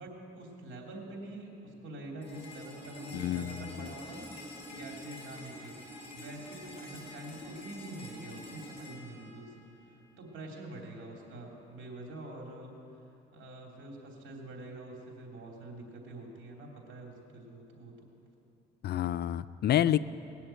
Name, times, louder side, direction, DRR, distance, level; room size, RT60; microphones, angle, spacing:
voice 1, 0.0-4.3 4.7-5.8 6.1-9.9 10.2-12.7 13.3-18.1, right 2 dB, 70° right, 0 dB, 3.0 m, -45 dB
sound 1, 2.2-10.2, left 1 dB, 30° left, 4.1 m, -47 dB
voice 2, 3.1-3.9 18.8-20.0, left 11 dB, 55° left, 16 dB, 0.4 m, -29 dB
19.5 x 7.0 x 8.9 m, 2.8 s
cardioid pair, 90°, 20 cm